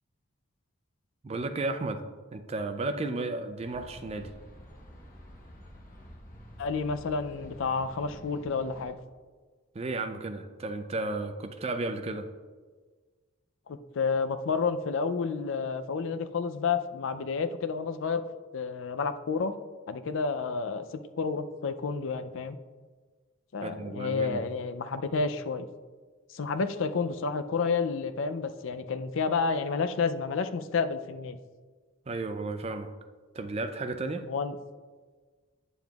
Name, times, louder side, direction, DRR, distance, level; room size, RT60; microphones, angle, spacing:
voice 1, 1.2-2.0 2.3-4.3 9.7-12.3 23.6-24.4 32.1-32.9 33.3-34.3, right 2 dB, 30° right, 8 dB, 0.4 m, -33 dB
sound 1, 3.6-8.9, equal, 40° left, 0.9 m, -49 dB
voice 2, 6.6-8.9 13.7-18.2 18.5-19.5 19.9-20.9 21.2-22.6 23.5-25.7 26.3-31.4 34.3-34.6, left 5 dB, 60° left, 10 dB, 0.4 m, -30 dB
9.1 x 7.0 x 2.3 m, 1.4 s
head